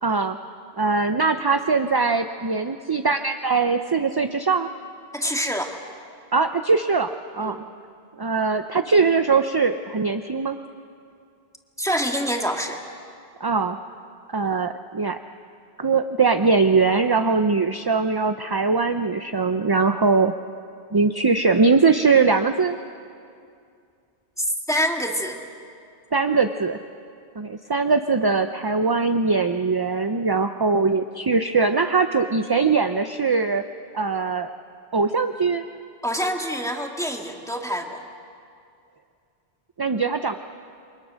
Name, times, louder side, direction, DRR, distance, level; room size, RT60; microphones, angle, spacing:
voice 1, 0.0-0.4 0.8-4.7 6.3-7.6 8.2-10.6 13.4-13.8 14.3-15.2 15.8-20.3 20.9-22.8 26.1-26.8 27.4-33.6 33.9-34.5 34.9-35.6 39.8-40.4, right 4 dB, 30° right, 7 dB, 0.5 m, -21 dB
voice 2, 5.1-5.7 7.4-7.6 11.8-12.8 24.4-25.4 36.0-38.0, equal, 5° left, 2 dB, 1.8 m, -26 dB
29.0 x 23.5 x 6.4 m, 2.4 s
omnidirectional pair, 1.1 m